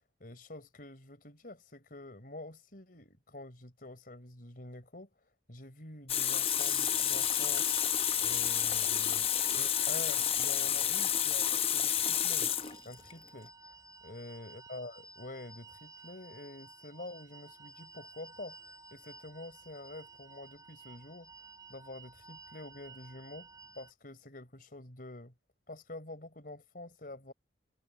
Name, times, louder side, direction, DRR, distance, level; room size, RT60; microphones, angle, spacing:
voice 1, 0.2-5.1 5.5-7.7 8.2-12.5 12.8-13.5 14.0-21.3 21.7-23.5 23.7-25.3 25.7-27.3, left 2 dB, 50° left, 4.2 m, -47 dB
Water tap faucet, 6.1-13.1, left 9 dB, 35° left, 0.8 m, -30 dB
sound 1, 6.5-23.9, right 3 dB, 20° right, 3.2 m, -53 dB
head